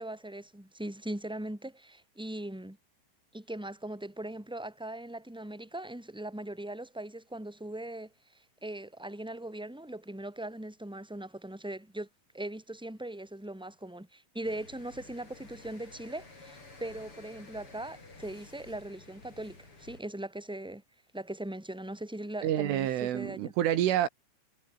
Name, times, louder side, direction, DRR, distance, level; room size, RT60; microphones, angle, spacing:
voice 1, 0.0-2.8 3.3-12.1 12.3-20.8 21.1-23.5, right 1 dB, ahead, 2.2 m, -40 dB
sound 1, 14.4-20.0, left 3 dB, 25° left, 7.1 m, -52 dB
voice 2, 22.4-24.1, right 11 dB, 80° right, 4.5 m, -28 dB
omnidirectional pair, 5.6 m